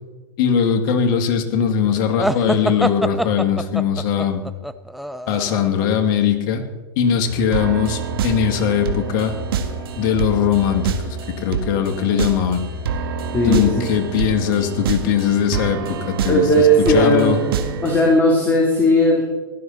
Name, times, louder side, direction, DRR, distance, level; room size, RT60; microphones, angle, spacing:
voice 1, 0.4-4.4 5.3-6.6 7.0-9.3 10.0-12.6 13.5-16.4 16.9-17.4, left 8 dB, 55° left, 5 dB, 2.1 m, -20 dB
sound 1, 2.2-5.9, equal, ahead, 0.4 m, -25 dB
Musical instrument, 7.2-14.0, left 1 dB, 75° left, 5.1 m, -34 dB
sound 2, 7.5-18.2, right 7 dB, 75° right, 1.6 m, -27 dB
voice 2, 13.3-13.7 16.3-17.3 17.8-19.2, equal, 15° left, -2 dB, 3.1 m, -16 dB
16.0 x 12.0 x 4.1 m, 1.3 s
hypercardioid pair, 120°, 12 cm